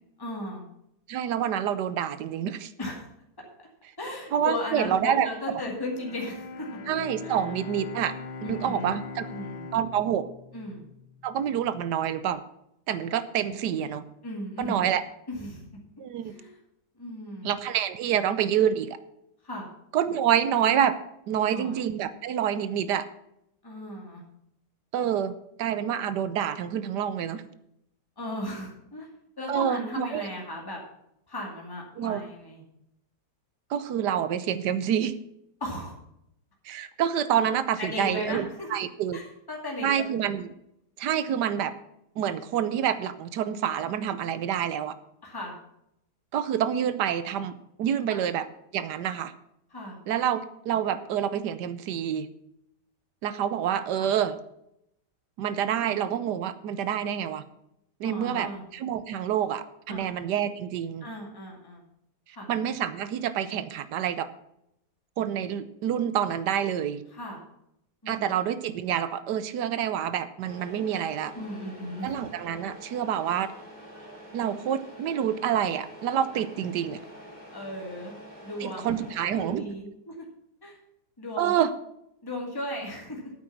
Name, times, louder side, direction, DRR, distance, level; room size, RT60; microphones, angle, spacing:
voice 1, 0.2-0.6 2.8-3.0 3.6-3.7 4.0-6.7 7.2-7.4 8.4-8.9 9.3-9.6 10.5-10.8 13.4-13.9 14.2-14.9 15.3-15.7 16.2-16.6 17.0-17.5 19.4-19.7 21.5-21.8 23.6-24.2 28.2-29.1 29.4-30.8 31.3-32.6 35.6-35.9 37.8-38.7 39.1-40.1 45.2-45.6 48.1-48.2 49.7-50.0 54.0-54.1 58.0-58.6 59.9-60.3 61.0-61.8 62.3-62.5 67.1-67.4 68.0-68.3 71.3-72.3 76.3-76.4 77.5-78.1 78.4-80.3 80.6-80.8 81.2-81.5 82.2-83.3, left 1 dB, 15° left, -1 dB, 2.2 m, -36 dB
voice 2, 1.1-2.7 4.3-5.3 6.9-8.1 8.4-9.3 9.7-10.3 11.2-12.4 12.9-14.0 14.6-15.0 16.0-16.4 17.4-19.0 19.9-21.0 21.3-23.1 24.9-25.3 25.6-27.4 29.5-30.3 32.0-32.2 33.7-35.1 36.6-39.2 39.8-40.5 41.0-41.7 42.2-44.9 46.3-47.5 47.8-48.5 48.7-49.3 50.1-52.3 53.2-54.4 55.4-57.4 58.0-61.1 62.5-64.3 65.2-67.0 68.1-71.3 72.0-73.5 74.3-77.0 78.6-79.7 81.4-81.7, right 9 dB, 90° right, 13 dB, 1.4 m, -27 dB
Bowed string instrument, 5.9-11.9, left 4 dB, 85° left, 1.6 m, -41 dB
Truck, 70.4-79.5, equal, 25° right, 3.2 m, -46 dB
9.0 x 8.5 x 5.9 m, 0.79 s
omnidirectional pair, 1.8 m